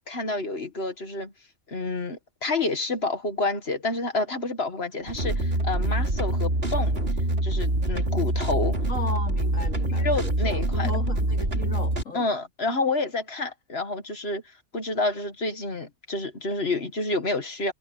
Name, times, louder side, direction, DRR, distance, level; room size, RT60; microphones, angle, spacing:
voice 1, 0.1-1.3 1.7-7.0 7.4-8.8 10.0-10.9 12.1-14.4 14.7-17.7, left 2 dB, 50° left, 1.9 m, -29 dB
sound 1, 5.0-12.0, right 1 dB, 50° right, 3.7 m, -25 dB
voice 2, 8.9-12.3, left 2 dB, 80° left, 4.3 m, -36 dB
omnidirectional pair, 1.3 m